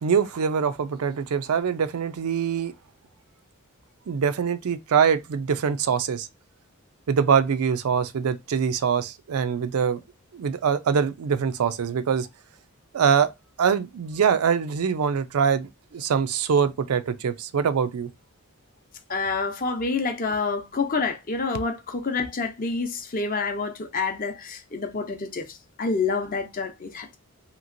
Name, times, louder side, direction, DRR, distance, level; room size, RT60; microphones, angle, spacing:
voice 1, 0.0-2.7 4.1-6.3 7.1-10.0 10.3-12.3 12.9-13.3 13.6-18.1, right 6 dB, 80° right, 0.4 m, -23 dB
voice 2, 19.1-27.2, left 4 dB, 40° left, 0.6 m, -28 dB
2.9 x 2.9 x 2.5 m
head